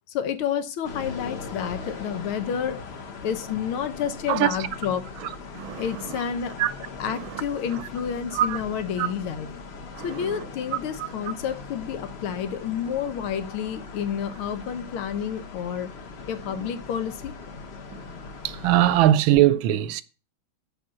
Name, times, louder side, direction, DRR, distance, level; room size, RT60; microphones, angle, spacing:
voice 1, 0.1-2.8 3.2-5.1 5.8-6.5 7.0-9.5 10.0-15.9 16.3-17.3, left 8 dB, 85° left, 1.8 m, -30 dB
sound 1, 0.8-19.1, left 4 dB, 45° left, 0.8 m, -40 dB
voice 2, 4.3-4.7 5.2-6.2 6.6-6.7 7.1-7.4 7.7-7.8 8.3-8.6 9.0-9.1 10.0-10.4 11.0-11.1 16.5-16.7 17.9-18.1 18.4-20.0, right 12 dB, 80° right, 1.4 m, -23 dB
7.3 x 5.4 x 7.4 m
omnidirectional pair, 2.2 m